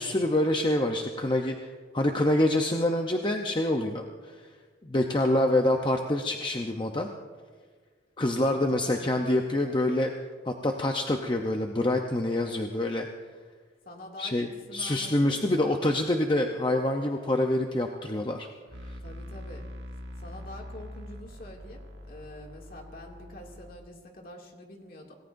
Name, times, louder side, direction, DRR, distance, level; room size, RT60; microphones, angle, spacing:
voice 1, 0.0-4.4 4.8-7.1 8.2-10.1 10.5-13.1 14.2-18.5 18.8-18.9, left 1 dB, 25° left, 3 dB, 0.7 m, -26 dB
voice 2, 8.4-9.1 13.9-15.7 16.3-16.5 19.0-19.7 20.2-25.1, left 1 dB, 45° left, 0 dB, 2.4 m, -46 dB
sound 1, 18.7-23.7, left 1 dB, 60° right, 1.6 m, -43 dB
26.5 x 18.5 x 2.6 m, 1.5 s
head